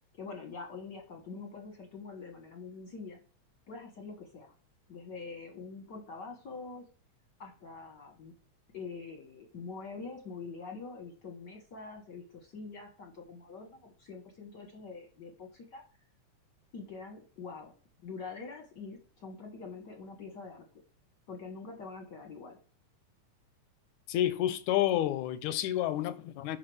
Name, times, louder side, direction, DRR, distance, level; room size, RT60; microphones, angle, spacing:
voice 1, 0.1-3.2 3.7-4.5 4.9-6.9 7.4-8.3 8.7-15.8 16.7-17.7 18.0-20.6 21.3-22.6, left 4 dB, 55° left, 1.2 m, -45 dB
voice 2, 24.1-26.6, left 12 dB, 80° left, 2.0 m, -29 dB
9.9 x 5.9 x 3.3 m
omnidirectional pair, 3.4 m